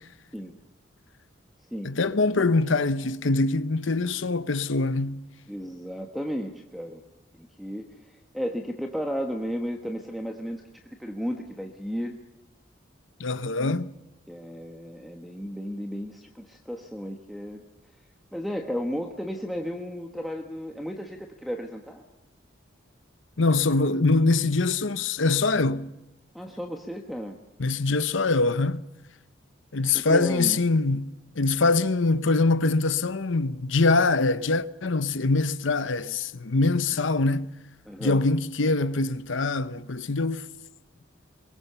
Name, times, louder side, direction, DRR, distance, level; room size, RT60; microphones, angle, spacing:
voice 1, 1.8-5.2 13.2-13.9 23.4-25.9 27.6-28.8 29.7-37.5 38.0-40.5, left 3 dB, 70° left, 0.9 m, -24 dB
voice 2, 5.5-7.0 7.3-10.6 11.0-12.2 14.3-17.6 18.3-22.0 26.3-27.4 29.8-30.6 37.8-38.2, equal, ahead, 1.3 m, -34 dB
23.5 x 22.0 x 6.9 m
head